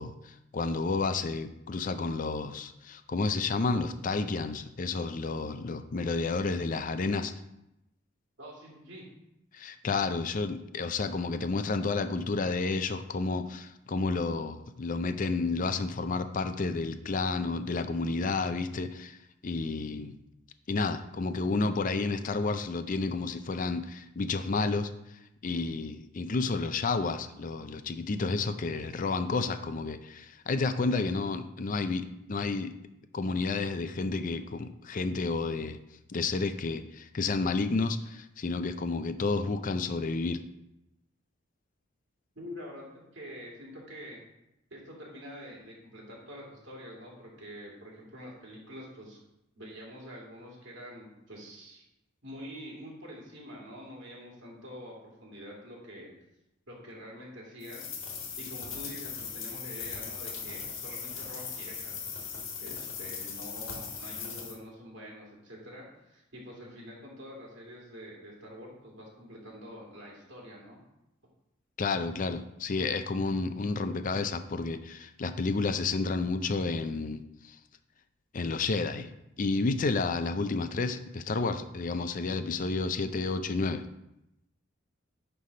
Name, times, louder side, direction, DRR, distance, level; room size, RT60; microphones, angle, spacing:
voice 1, 0.0-7.3 9.5-19.2 19.4-20.1 20.7-24.9 25.4-32.7 33.1-35.8 36.1-40.4 71.8-77.6 78.3-79.1 79.4-83.8, left 3 dB, 40° left, 10 dB, 0.5 m, -31 dB
voice 2, 8.4-9.1 42.4-44.2 44.7-49.2 49.6-51.8 52.2-56.1 56.7-57.9 58.4-62.1 62.6-70.8, equal, 60° right, -3 dB, 2.5 m, -46 dB
sound 1, 57.6-64.6, left 6 dB, 75° left, 1.5 m, -39 dB
9.6 x 3.4 x 5.3 m, 0.87 s
head